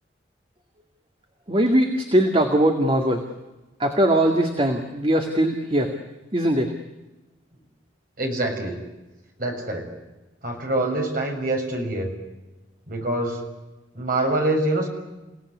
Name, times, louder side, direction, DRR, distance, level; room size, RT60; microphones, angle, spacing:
voice 1, 1.5-3.3 3.8-5.9 6.3-6.7, right 1 dB, 30° right, 4 dB, 2.1 m, -20 dB
voice 2, 8.2-8.7 9.4-9.9 10.4-12.1 12.9-13.4 13.9-14.9, right 1 dB, 45° right, 2 dB, 6.6 m, -25 dB
29.5 x 18.0 x 9.8 m, 1.1 s
head